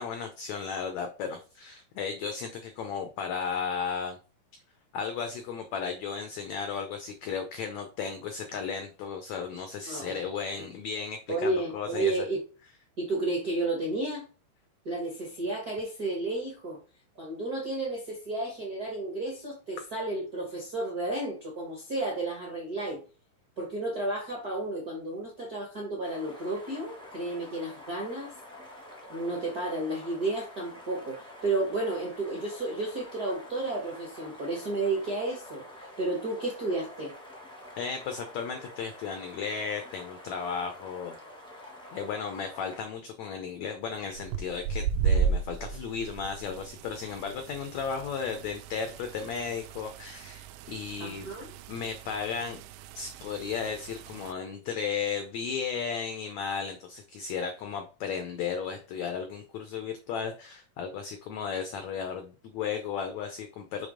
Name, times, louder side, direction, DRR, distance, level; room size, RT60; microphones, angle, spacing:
voice 1, 0.0-4.2 4.9-12.2 37.8-41.2 41.9-51.3 51.7-52.6 52.9-63.9, left 6 dB, 90° left, 1.5 m, -35 dB
voice 2, 9.9-10.2 11.3-12.4 13.0-14.2 14.8-16.8 17.1-23.0 23.6-28.3 29.1-37.1 51.0-51.5, right 2 dB, 55° right, 1.0 m, -32 dB
sound 1, 26.0-42.8, left 1 dB, 10° left, 0.3 m, -48 dB
sound 2, 44.1-54.3, right 6 dB, 85° right, 2.3 m, -34 dB
7.0 x 3.4 x 5.0 m
omnidirectional pair, 4.3 m